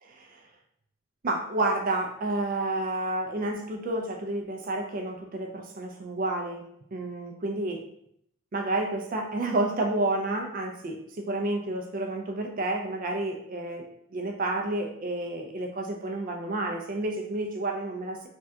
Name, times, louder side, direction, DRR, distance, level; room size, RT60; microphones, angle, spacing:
voice 1, 0.0-0.4 1.2-6.6 6.9-7.8 8.5-18.3, right 2 dB, 40° right, 3 dB, 0.3 m, -30 dB
3.4 x 2.2 x 2.6 m, 0.73 s
head